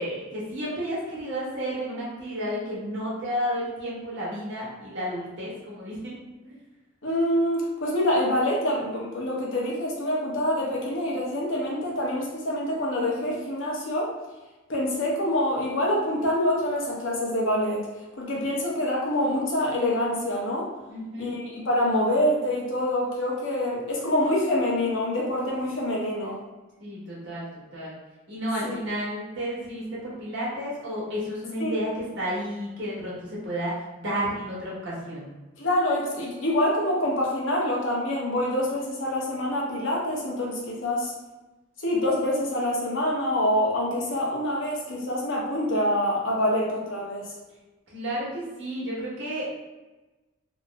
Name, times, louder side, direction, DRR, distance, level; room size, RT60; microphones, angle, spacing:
voice 1, 0.0-6.1 6.4-6.6 20.9-21.3 26.8-27.4 27.7-27.9 28.3-35.3 47.9-49.5, equal, 60° right, -7 dB, 1.2 m, -32 dB
voice 2, 7.0-14.1 14.7-17.9 18.2-20.7 21.2-26.4 28.6-28.8 31.6-31.7 35.6-41.1 41.8-47.3, left 1 dB, 70° left, -3 dB, 0.8 m, -26 dB
3.0 x 2.0 x 3.4 m, 1.1 s
head